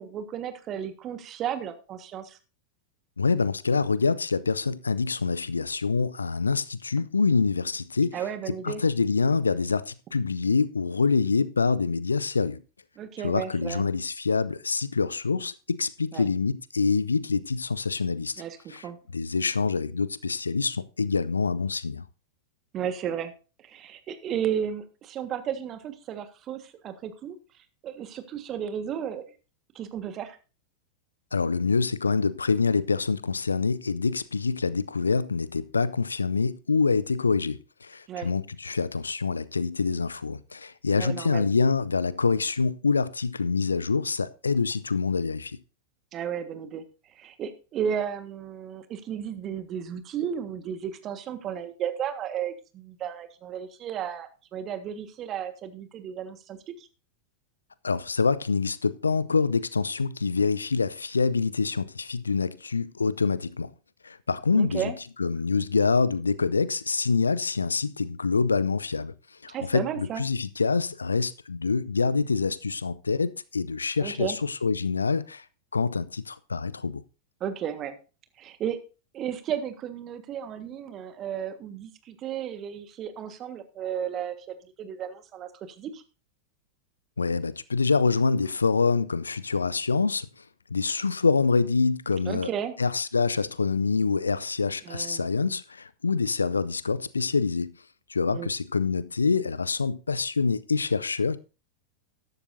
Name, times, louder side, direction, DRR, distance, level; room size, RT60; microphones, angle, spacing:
voice 1, 0.0-2.4 8.1-8.8 13.0-13.8 16.1-16.3 18.4-19.0 22.7-23.3 23.6-27.4 27.8-29.2 29.7-30.4 38.1-38.3 41.0-41.4 46.1-46.8 47.1-56.9 64.6-64.9 69.5-70.2 74.0-74.4 77.4-78.0 78.4-78.8 79.1-86.0 92.2-92.7 94.8-95.3 98.3-98.5, right 8 dB, 30° right, 1.5 m, -33 dB
voice 2, 3.2-8.2 8.6-12.6 13.2-18.4 18.7-18.9 19.1-22.0 31.3-45.6 57.8-63.7 64.0-64.9 65.2-69.1 69.4-75.5 75.7-77.0 87.2-90.4 90.7-92.5 92.8-97.7 98.1-101.4, left 4 dB, 75° left, 0.5 m, -26 dB
13.5 x 11.5 x 2.7 m
figure-of-eight pair, 90°, 0 cm